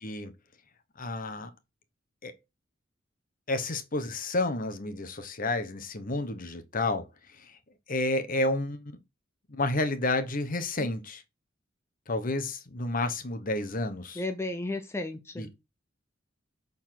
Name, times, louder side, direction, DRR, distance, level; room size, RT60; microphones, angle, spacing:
voice 1, 0.0-0.3 1.0-1.5 2.2-2.3 3.5-7.6 7.9-9.0 9.5-11.2 12.1-14.2 15.4-15.5, left 2 dB, 45° left, 1.1 m, -30 dB
voice 2, 14.2-15.5, left 2 dB, 15° left, 0.7 m, -34 dB
6.9 x 4.1 x 5.9 m
head